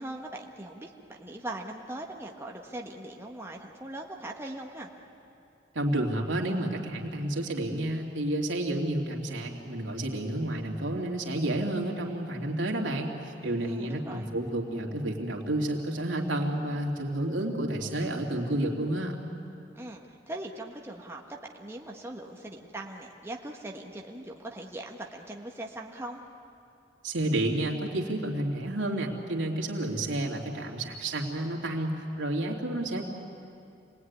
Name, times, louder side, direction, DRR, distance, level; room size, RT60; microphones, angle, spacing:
voice 1, 0.0-4.9 13.6-14.3 19.7-26.2, right 1 dB, 15° right, 0 dB, 1.5 m, -40 dB
voice 2, 5.7-19.2 27.0-33.1, right 1 dB, 85° right, 0 dB, 3.0 m, -30 dB
27.0 x 19.5 x 9.7 m, 2.7 s
head